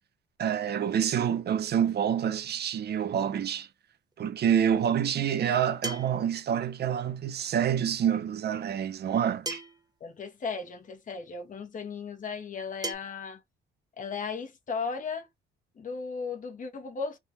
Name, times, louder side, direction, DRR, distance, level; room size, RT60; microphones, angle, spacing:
voice 1, 0.4-3.7 4.2-9.6, right 9 dB, 55° right, 0.7 m, -27 dB
sound 1, 4.1-4.2 5.8-6.3 7.8-7.9 9.5-9.9 11.1-11.2 12.8-13.0, right 2 dB, 20° right, 0.9 m, -36 dB
voice 2, 10.0-13.4 14.0-15.3 15.8-17.2, left 5 dB, 40° left, 1.0 m, -36 dB
3.5 x 2.4 x 2.9 m
cardioid pair, 90°, 20 cm